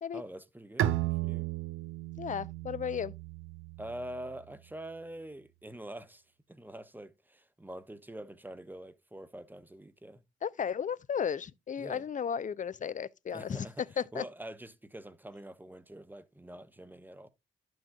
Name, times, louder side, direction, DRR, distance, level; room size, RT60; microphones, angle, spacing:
voice 1, 0.1-1.5 3.8-6.2 6.5-10.2 11.8-12.0 13.3-13.9 14.1-17.3, right 1 dB, 10° right, 0.8 m, -45 dB
Bowed string instrument, 0.8-4.3, right 14 dB, 75° right, 0.5 m, -34 dB
voice 2, 2.2-3.1 10.4-13.7 14.0-14.2, left 7 dB, 40° left, 0.4 m, -34 dB
11.0 x 6.3 x 2.2 m
supercardioid pair, 50°, 21 cm